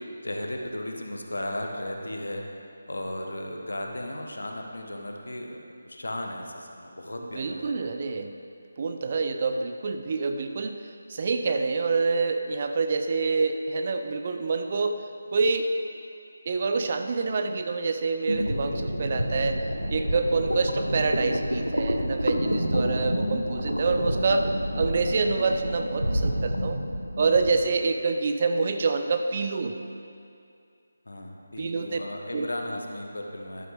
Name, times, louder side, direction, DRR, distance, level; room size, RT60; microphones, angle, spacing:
voice 1, 0.2-2.4 2.9-7.7 20.5-20.9 31.1-33.7, left 1 dB, 65° left, 2 dB, 1.2 m, -35 dB
voice 2, 7.2-8.4 8.8-10.8 11.1-15.7 16.5-19.6 19.9-26.8 27.2-29.8 31.6-32.0 32.3-32.5, right 4 dB, 35° right, 6 dB, 0.5 m, -27 dB
sound 1, 18.3-27.7, equal, 90° right, 0.8 m, -28 dB
11.0 x 9.1 x 3.4 m, 2.4 s
figure-of-eight pair, 155°, 0 cm